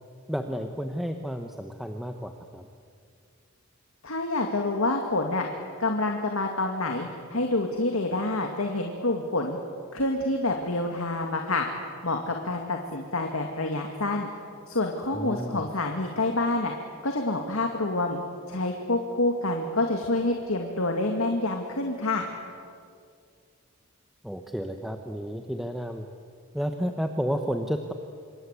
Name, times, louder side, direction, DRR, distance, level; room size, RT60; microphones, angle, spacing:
voice 1, 0.3-2.7 15.1-15.7 24.2-26.1 26.5-27.9, equal, ahead, 5 dB, 1.0 m, -31 dB
voice 2, 4.0-5.5 5.8-9.6 9.9-11.7 12.0-14.3 14.7-16.7 17.0-18.2 18.5-22.3, left 2 dB, 80° left, 2 dB, 2.3 m, -27 dB
26.5 x 25.0 x 8.3 m, 2.3 s
head